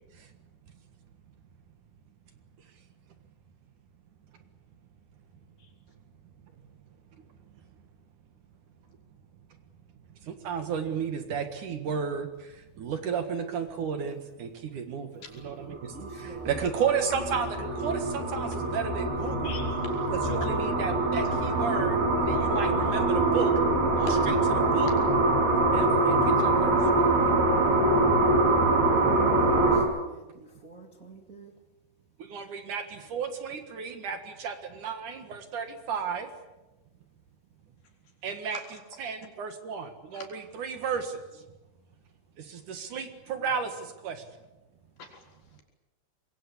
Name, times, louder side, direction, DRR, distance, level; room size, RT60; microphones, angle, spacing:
voice 1, 10.2-19.6 20.1-23.5 24.0-24.3 24.7-24.9 25.7-27.3 32.2-36.3 38.2-41.4 42.4-44.2, right 6 dB, 60° right, 8 dB, 2.9 m, -33 dB
sound 1, 15.7-29.8, right 2 dB, 80° right, 7.4 m, -24 dB
voice 2, 15.9-16.5 29.6-31.5, right 3 dB, 25° right, 2 dB, 2.0 m, -48 dB
voice 3, 19.4-20.1 24.1-24.3 27.4-27.9 38.5-38.6 40.1-40.3 45.0-45.2, left 5 dB, 70° left, 2 dB, 5.8 m, -41 dB
25.5 x 22.0 x 8.6 m, 1.1 s
omnidirectional pair, 4.4 m